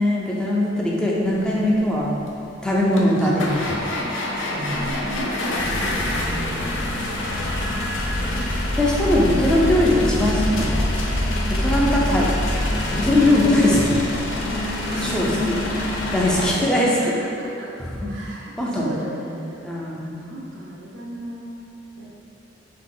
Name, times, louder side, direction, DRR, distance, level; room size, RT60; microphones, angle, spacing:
voice 1, 0.0-2.2 2.6-3.6 4.5-4.9 8.8-10.8 11.5-12.3 12.9-14.0 15.0-15.5 16.1-17.1 17.8-18.9 19.6-20.1, left 1 dB, 5° left, -5 dB, 0.5 m, -21 dB
voice 2, 0.7-1.8 2.9-3.6 4.5-6.7 8.2-8.8 14.9-15.5 15.8-17.7 18.1-19.6 20.0-21.7 22.0-22.1, right 1 dB, 75° right, -4 dB, 0.6 m, -35 dB
sound 1, 2.3-2.4 2.9-16.5, left 1 dB, 75° left, 0.5 m, -25 dB
3.9 x 2.8 x 3.8 m, 2.6 s
head